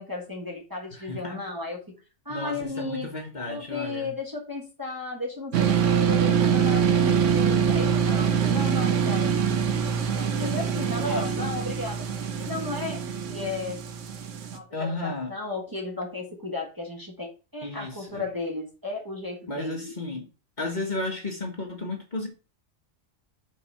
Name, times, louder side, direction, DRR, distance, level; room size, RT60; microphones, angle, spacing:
voice 1, 0.0-1.8 2.2-3.1 3.5-9.4 10.1-12.0 12.4-13.8 14.5-19.9, left 3 dB, 15° right, 1.5 m, -34 dB
voice 2, 0.9-1.4 2.3-4.2 10.9-11.5 14.7-15.3 17.6-18.2 19.5-20.3 20.6-22.3, left 2 dB, 40° left, 1.3 m, -33 dB
sound 1, 5.5-14.6, right 7 dB, 85° right, 1.2 m, -24 dB
5.4 x 4.1 x 5.5 m
omnidirectional pair, 1.2 m